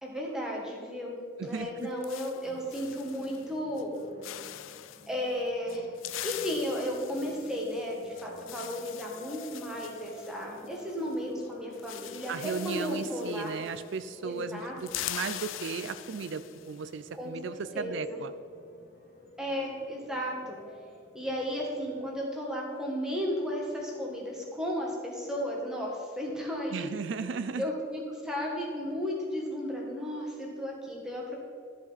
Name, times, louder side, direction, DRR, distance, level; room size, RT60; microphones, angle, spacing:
voice 1, 0.0-3.9 5.1-13.5 14.2-14.7 17.1-17.3 17.7-18.2 19.4-20.6 21.1-26.9 27.6-31.3, equal, 5° right, -2 dB, 1.4 m, -34 dB
voice 2, 1.4-1.9 12.3-18.3 26.7-27.7, right 5 dB, 70° right, 12 dB, 0.4 m, -36 dB
sound 1, 1.5-3.5 3.8-4.0 4.2-5.1 5.7-11.1 11.4-11.5 11.7-14.1 14.4-16.8, left 13 dB, 85° left, 0.4 m, -42 dB
sound 2, 2.4-22.1, equal, 40° left, 2.2 m, -53 dB
13.0 x 5.3 x 4.1 m, 2.2 s
head